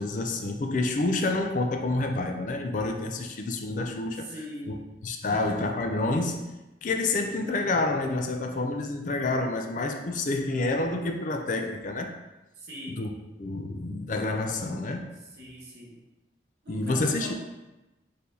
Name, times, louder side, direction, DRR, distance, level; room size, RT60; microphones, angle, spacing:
voice 1, 0.0-4.3 4.7-4.8 5.0-6.5 6.8-12.1 13.0-13.1 13.4-15.0 16.7-17.3, left 2 dB, 45° left, 4 dB, 0.4 m, -28 dB
voice 2, 4.1-4.9 5.2-5.7 12.6-13.0 14.3-14.7 15.1-16.0 16.6-17.3, equal, 65° right, -3 dB, 1.1 m, -42 dB
4.4 x 3.4 x 2.7 m, 1.0 s
head